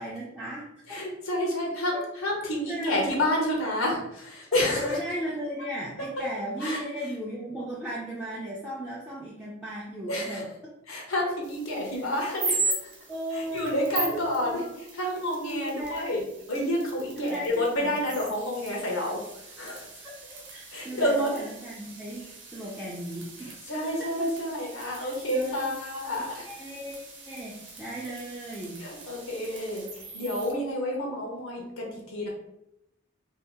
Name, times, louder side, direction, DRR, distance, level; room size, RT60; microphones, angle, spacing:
voice 1, 0.0-1.0 1.9-2.0 2.7-3.2 4.6-10.5 13.1-14.7 15.2-16.1 17.1-18.0 20.0-24.3 24.9-25.8 26.4-27.0 27.3-28.8, equal, 5° right, -7 dB, 0.4 m, -36 dB
voice 2, 0.9-5.0 6.6-6.8 10.1-10.4 10.9-12.7 13.3-14.6 14.9-19.2 19.6-19.9 20.7-21.4 23.4-26.5 28.8-32.3, left 1 dB, 85° left, -1 dB, 0.8 m, -29 dB
sound 1, 11.4-30.5, right 3 dB, 60° right, 0.8 m, -39 dB
2.7 x 2.4 x 3.5 m, 0.83 s
head